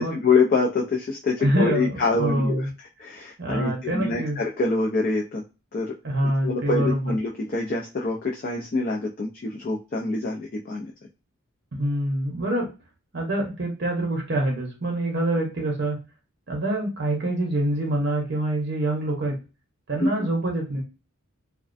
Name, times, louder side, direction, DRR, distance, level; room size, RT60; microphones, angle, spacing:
voice 1, 0.0-2.7 3.0-5.4 5.7-5.9 6.4-10.9 20.0-20.1, left 3 dB, 40° left, -1 dB, 0.3 m, -25 dB
voice 2, 1.4-2.7 3.4-4.4 6.0-7.1 11.7-12.7 13.1-16.0 16.5-19.4 19.9-20.8, right 1 dB, 55° right, 1 dB, 0.7 m, -25 dB
2.3 x 2.1 x 2.5 m, 0.30 s
head